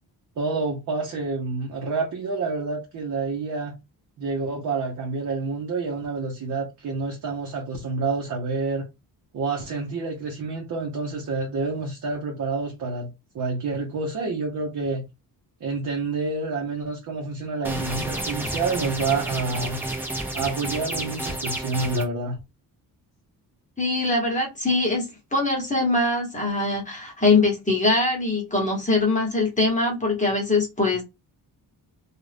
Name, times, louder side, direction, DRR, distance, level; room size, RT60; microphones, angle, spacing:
voice 1, 0.4-3.7 4.2-8.8 9.3-13.1 13.3-15.1 15.6-19.8 20.3-22.4, right 3 dB, 50° right, 0.8 m, -28 dB
sound 1, 17.6-22.0, right 1 dB, 5° right, 0.7 m, -30 dB
voice 2, 23.8-31.0, left 2 dB, 20° left, 1.2 m, -22 dB
2.4 x 2.4 x 3.3 m
cardioid pair, 115°, 39 cm